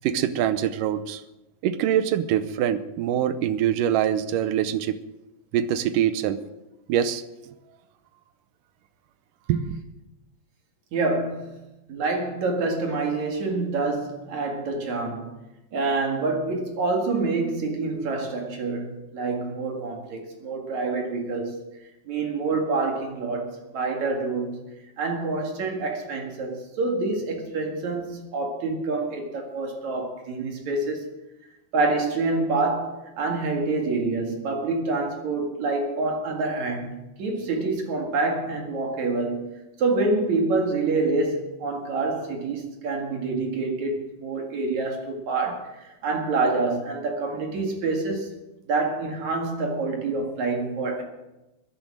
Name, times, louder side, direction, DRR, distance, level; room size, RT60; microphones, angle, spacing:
voice 1, 0.0-1.2 1.6-5.0 5.5-6.4 6.9-7.5 9.5-9.8, right 10 dB, 75° right, 12 dB, 2.2 m, -24 dB
voice 2, 10.9-11.6 11.9-15.3 15.7-21.6 22.1-24.6 25.0-31.1 31.7-39.5 39.8-48.3 48.7-51.0, right 3 dB, 55° right, 2 dB, 3.1 m, -27 dB
13.5 x 10.5 x 7.6 m, 0.99 s
omnidirectional pair, 4.2 m